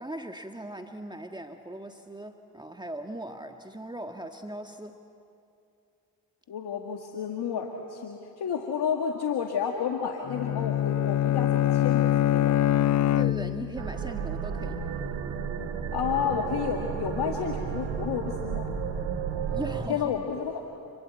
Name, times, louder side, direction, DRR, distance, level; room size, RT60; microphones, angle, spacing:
voice 1, 0.0-5.0 13.1-14.8 19.5-20.2, right 1 dB, 10° right, 5 dB, 1.6 m, -39 dB
voice 2, 6.5-12.6 15.9-18.7 19.9-20.6, left 7 dB, 60° left, 2 dB, 2.0 m, -31 dB
Bowed string instrument, 10.3-13.9, left 11 dB, 40° left, 0.6 m, -24 dB
sound 1, 13.8-19.9, right 6 dB, 65° right, 2.1 m, -32 dB
28.0 x 22.0 x 8.5 m, 2.6 s
hypercardioid pair, 50°, 45 cm